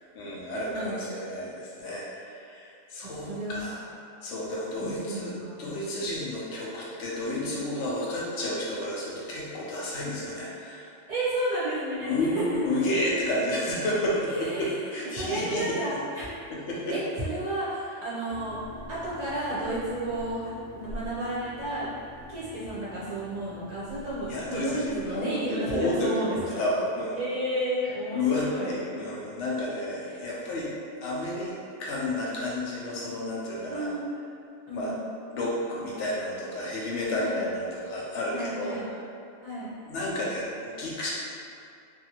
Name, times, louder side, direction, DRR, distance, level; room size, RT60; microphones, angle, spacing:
voice 1, 0.1-3.8 4.2-5.3 5.6-10.9 12.0-15.8 16.5-17.0 24.3-27.2 28.1-30.7 31.0-31.5 31.8-33.9 34.7-34.9 35.3-38.8 39.9-41.1, left 1 dB, 75° left, -5 dB, 0.9 m, -31 dB
voice 2, 0.7-1.1 3.0-3.7 4.8-5.7 7.2-7.5 11.1-12.4 14.3-14.8 15.1-16.3 16.9-18.6 18.9-21.9 22.3-26.6 27.1-28.8 30.1-30.2 33.7-34.0 34.7-35.1 37.0-37.5 38.3-38.9 39.4-39.7, right 1 dB, 45° right, -9 dB, 0.6 m, -32 dB
sound 1, 18.3-25.2, left 1 dB, 25° left, 0.7 m, -46 dB
2.6 x 2.4 x 2.9 m, 2.4 s
omnidirectional pair, 1.2 m